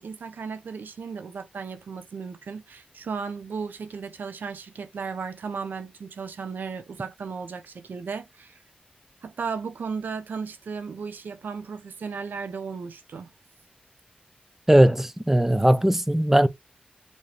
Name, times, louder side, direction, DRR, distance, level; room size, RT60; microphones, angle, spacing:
voice 1, 0.0-8.6 9.2-13.3, right 5 dB, 80° right, 0.6 m, -35 dB
voice 2, 14.7-16.5, right 1 dB, 10° right, 0.5 m, -19 dB
5.2 x 2.7 x 3.3 m
cardioid pair, 55°, 3 cm